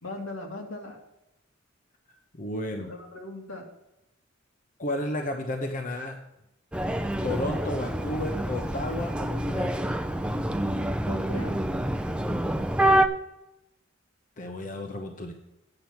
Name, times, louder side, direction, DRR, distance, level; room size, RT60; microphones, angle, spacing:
voice 1, 0.0-1.0 2.7-3.6 7.1-7.5 7.9-8.0 11.1-11.6, left 1 dB, 75° left, 1 dB, 2.1 m, -39 dB
voice 2, 2.4-2.9 4.8-6.2 7.2-9.7 14.4-15.3, left 1 dB, 40° left, 3 dB, 0.8 m, -32 dB
sound 1, 6.7-13.1, right 1 dB, 5° right, 0.5 m, -27 dB
8.8 x 5.9 x 7.7 m, 0.90 s
head